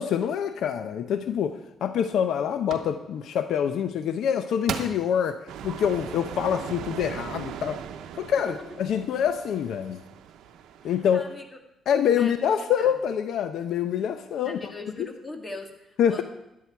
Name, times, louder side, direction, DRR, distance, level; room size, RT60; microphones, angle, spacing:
voice 1, 0.0-7.8 8.1-10.0 10.8-11.3 11.9-14.6 15.0-15.1 16.0-16.2, left 8 dB, 75° left, 10 dB, 0.7 m, -26 dB
sound 1, 1.3-1.4 2.0-2.3 2.7-2.9 4.1-4.2 4.7-5.1 5.7-5.8, right 6 dB, 70° right, 1.4 m, -33 dB
sound 2, 5.5-11.1, right 9 dB, 85° right, 0.8 m, -40 dB
voice 2, 10.8-11.4 12.1-13.0 14.4-16.2, left 2 dB, 20° left, 4 dB, 2.2 m, -40 dB
12.5 x 11.5 x 4.6 m, 0.88 s
cardioid pair, 90°, 0 cm